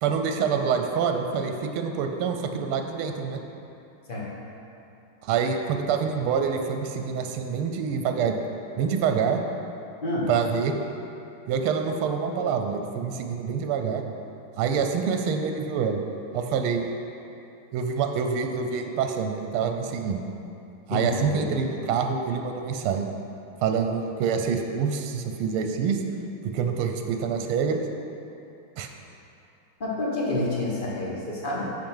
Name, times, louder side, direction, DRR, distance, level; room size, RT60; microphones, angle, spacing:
voice 1, 0.0-3.4 5.2-8.4 8.8-9.4 10.3-10.7 11.5-14.0 14.6-16.0 16.3-16.9 17.7-20.2 20.9-23.0 23.6-26.0 26.4-27.8 28.8-28.9, right 6 dB, 85° right, 5 dB, 1.5 m, -26 dB
voice 2, 20.9-21.5 29.8-31.7, left 1 dB, 35° left, -4 dB, 0.9 m, -28 dB
7.9 x 4.5 x 5.5 m, 2.8 s
omnidirectional pair, 2.3 m